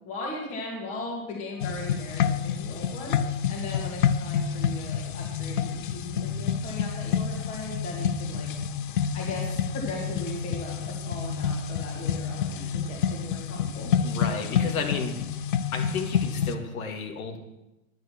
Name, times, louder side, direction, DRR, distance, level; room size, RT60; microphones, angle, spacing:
voice 1, 0.0-8.5 9.0-13.9, left 2 dB, 15° left, -2 dB, 2.0 m, -38 dB
sound 1, 1.6-16.5, left 7 dB, 40° left, 0.4 m, -28 dB
voice 2, 14.0-15.1 15.7-17.4, left 5 dB, 85° left, 3 dB, 2.4 m, -32 dB
10.5 x 9.6 x 6.0 m, 0.94 s
supercardioid pair, 175°, 41 cm